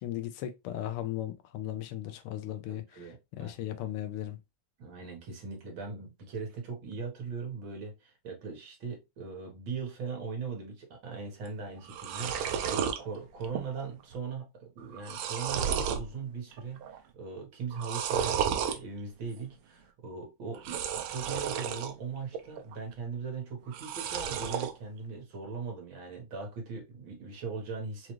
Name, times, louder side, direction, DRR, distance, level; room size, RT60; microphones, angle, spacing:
voice 1, 0.0-3.0 3.3-4.4, left 13 dB, 85° left, 1.6 m, -36 dB
voice 2, 2.7-3.6 4.8-28.1, right 5 dB, 65° right, 2.0 m, -40 dB
sound 1, 11.5-11.6 11.8-13.0 13.4-13.9 14.1-14.2 14.8-16.1 16.5-17.0 17.7-18.8 20.5-21.9 22.3-22.9 23.7-24.7, right 8 dB, 85° right, 1.5 m, -32 dB
4.9 x 2.4 x 3.0 m
omnidirectional pair, 2.4 m